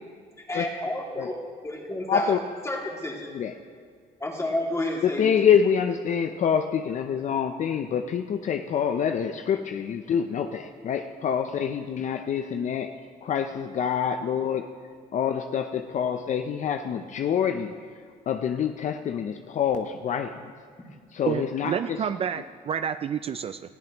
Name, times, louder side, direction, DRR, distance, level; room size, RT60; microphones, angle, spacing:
voice 1, 0.5-2.3 2.6-3.3 4.2-5.3, left 1 dB, 15° left, -1 dB, 2.4 m, -31 dB
voice 2, 2.1-2.4 3.3-3.5 5.0-12.9 13.2-14.7 15.1-17.9 18.3-20.5 21.1-22.0, left 7 dB, 45° left, 7 dB, 0.6 m, -26 dB
voice 3, 21.3-23.6, right 8 dB, 35° right, 11 dB, 0.3 m, -29 dB
19.0 x 14.0 x 3.0 m, 2.1 s
cardioid pair, 110°, 17 cm